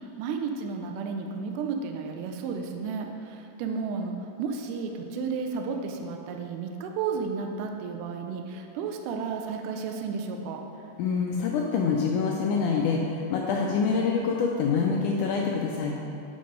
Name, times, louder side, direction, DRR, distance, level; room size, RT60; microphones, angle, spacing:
voice 1, 0.2-4.1 4.4-10.6, right 5 dB, 85° right, 3 dB, 1.9 m, -32 dB
voice 2, 11.0-16.0, left 5 dB, 85° left, 0 dB, 1.7 m, -26 dB
6.8 x 5.2 x 5.2 m, 2.7 s
omnidirectional pair, 4.1 m